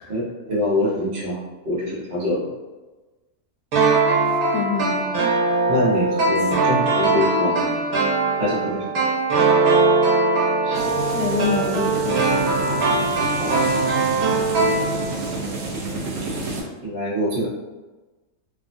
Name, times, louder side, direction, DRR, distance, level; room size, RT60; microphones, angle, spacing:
voice 1, 0.1-2.5 5.7-7.7 8.4-9.0 10.6-10.9 13.4-13.6 16.8-17.5, left 1 dB, 35° right, -7 dB, 0.8 m, -25 dB
sound 1, 3.7-15.4 15.6-15.7, right 3 dB, 80° right, 1.4 m, -21 dB
voice 2, 4.3-5.0 11.1-12.2, left 4 dB, 70° left, 0 dB, 1.0 m, -26 dB
sound 2, 10.7-16.6, right 2 dB, 65° right, 0.7 m, -29 dB
3.4 x 2.1 x 2.5 m, 1.2 s
omnidirectional pair, 1.6 m